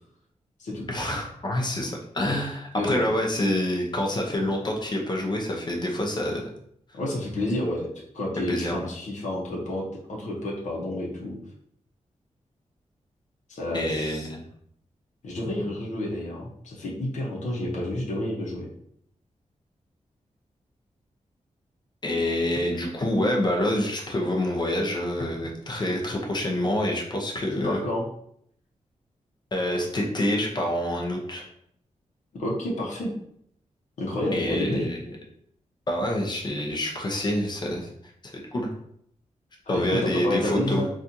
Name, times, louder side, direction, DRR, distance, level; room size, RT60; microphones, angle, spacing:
voice 1, 0.9-6.4 8.4-8.9 13.7-14.4 22.0-27.8 29.5-31.4 34.3-35.0 35.9-37.9 38.5-38.7 39.7-40.9, left 1 dB, 35° left, 0 dB, 0.6 m, -27 dB
voice 2, 6.9-11.4 13.5-14.3 15.2-18.7 27.6-28.1 32.3-33.1 34.0-34.9 39.7-40.9, left 1 dB, 70° left, -3 dB, 0.8 m, -29 dB
4.2 x 2.4 x 2.6 m, 0.68 s
wide cardioid pair, 155°, 13 cm